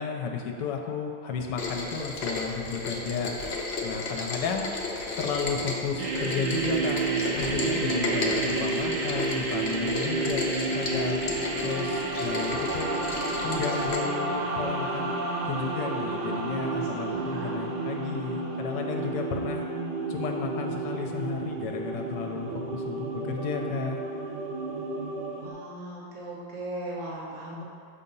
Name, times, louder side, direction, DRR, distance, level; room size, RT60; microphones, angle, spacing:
voice 1, 0.0-3.4 3.8-4.7 5.2-7.0 7.3-11.2 11.6-13.0 13.4-15.1 15.4-19.6 20.1-24.0, left 6 dB, 75° left, 2 dB, 1.2 m, -33 dB
Rain, 1.6-14.0, left 3 dB, 60° left, 0.7 m, -33 dB
sound 1, 6.0-25.5, right 3 dB, 80° right, 1.4 m, -31 dB
voice 2, 16.4-17.6 25.3-27.6, right 1 dB, 55° right, -6 dB, 1.6 m, -39 dB
6.8 x 2.8 x 5.3 m, 2.3 s
omnidirectional pair, 1.9 m